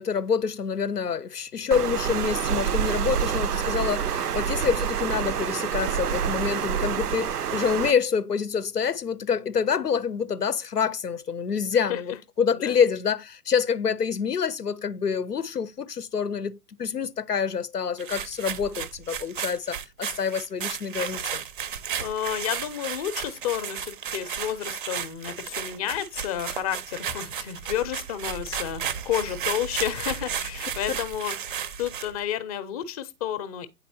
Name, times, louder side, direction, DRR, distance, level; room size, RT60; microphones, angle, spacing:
voice 1, 0.0-21.4 30.9-31.0, left 6 dB, 90° left, 0.6 m, -27 dB
Water, 1.7-7.9, right 8 dB, 80° right, 0.6 m, -27 dB
sound 1, 18.0-32.2, right 8 dB, 35° right, 0.5 m, -34 dB
voice 2, 22.0-31.4 31.8-33.7, left 11 dB, 25° left, 0.6 m, -31 dB
8.9 x 4.2 x 2.6 m
figure-of-eight pair, 115°, 45 cm